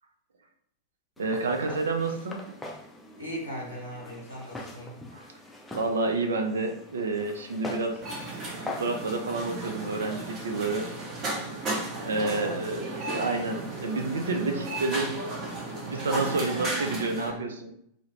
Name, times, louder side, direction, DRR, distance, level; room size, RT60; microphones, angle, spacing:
Walk footsteps, 1.2-9.0, left 2 dB, 5° left, 0.4 m, -42 dB
voice 1, 1.2-2.6 5.1-5.2 5.7-8.0 8.6-10.9 12.0-15.2 15.9-17.7, right 3 dB, 70° right, 5 dB, 0.4 m, -29 dB
voice 2, 3.2-5.0 11.9-12.7 16.2-16.4 17.2-17.4, equal, 90° right, -4 dB, 0.8 m, -38 dB
sound 1, 8.0-17.3, right 2 dB, 30° right, 0.7 m, -35 dB
2.3 x 2.1 x 3.1 m, 0.70 s
figure-of-eight pair, 90°, 0 cm